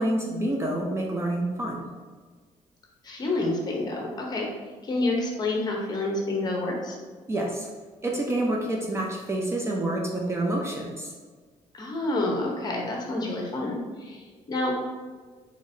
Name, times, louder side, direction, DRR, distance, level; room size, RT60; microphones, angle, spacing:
voice 1, 0.0-1.9 7.3-7.7 8.0-11.1, right 1 dB, 20° right, -1 dB, 0.4 m, -28 dB
voice 2, 3.0-4.5 4.8-7.0 11.7-14.7, left 2 dB, 30° left, -1 dB, 0.8 m, -28 dB
3.8 x 3.6 x 2.6 m, 1.5 s
cardioid pair, 145°, 13 cm